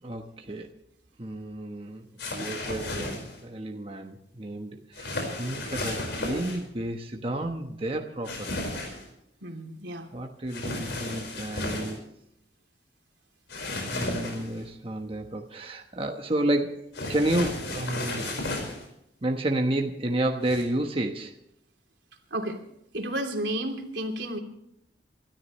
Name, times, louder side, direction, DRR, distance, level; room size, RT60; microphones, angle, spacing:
voice 1, 0.0-0.7 1.2-2.0 2.3-4.7 5.0-8.9 10.1-12.0 13.9-18.3 19.2-21.3, right 1 dB, 30° right, 3 dB, 1.1 m, -31 dB
sound 1, 2.2-3.4 4.9-6.6 8.2-9.0 10.5-12.0 13.5-14.6 16.9-18.8 20.4-20.6, left 2 dB, 80° left, 4.9 m, -33 dB
voice 2, 9.4-10.1 22.3-22.6 22.9-24.4, right 1 dB, 85° right, 3 dB, 3.0 m, -32 dB
27.5 x 13.5 x 3.1 m, 0.76 s
head